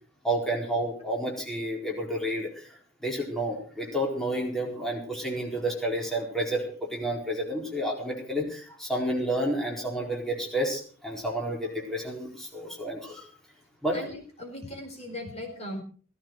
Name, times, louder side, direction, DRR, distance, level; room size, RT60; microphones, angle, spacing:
voice 1, 0.2-13.3 13.8-14.0, right 1 dB, ahead, -2 dB, 4.5 m, -30 dB
voice 2, 13.9-15.8, left 1 dB, 30° left, 3 dB, 4.5 m, -38 dB
17.0 x 15.5 x 4.8 m, 0.41 s
head